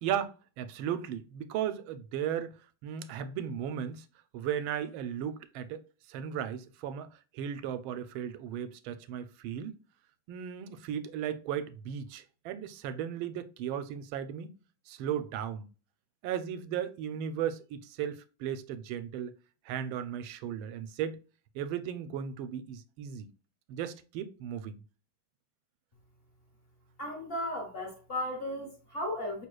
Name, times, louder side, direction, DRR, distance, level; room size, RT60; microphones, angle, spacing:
voice 1, 0.0-2.6 2.8-4.0 4.3-5.8 6.1-9.8 10.3-14.5 14.9-15.7 16.2-19.4 19.7-21.2 21.5-23.3 23.7-24.8, right 9 dB, 85° right, 1.4 m, -36 dB
voice 2, 27.0-29.5, left 1 dB, 35° left, 1.1 m, -35 dB
5.6 x 3.2 x 2.3 m
omnidirectional pair, 2.2 m